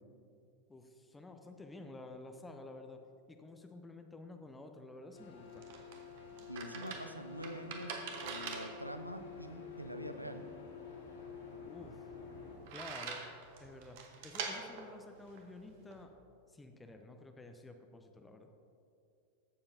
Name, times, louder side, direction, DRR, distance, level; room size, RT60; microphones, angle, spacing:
voice 1, 0.7-3.0 3.3-5.7 11.6-12.0 12.7-13.3 13.6-16.1 16.5-18.5, left 2 dB, 10° left, 5 dB, 0.5 m, -51 dB
sound 1, 5.1-12.6, left 6 dB, 65° left, 2.0 m, -50 dB
sound 2, 5.2-16.0, right 5 dB, 50° right, 0.9 m, -46 dB
voice 2, 6.5-10.4, equal, 90° right, 8 dB, 0.5 m, -45 dB
14.5 x 6.9 x 2.7 m, 2.5 s
figure-of-eight pair, 90°, 0 cm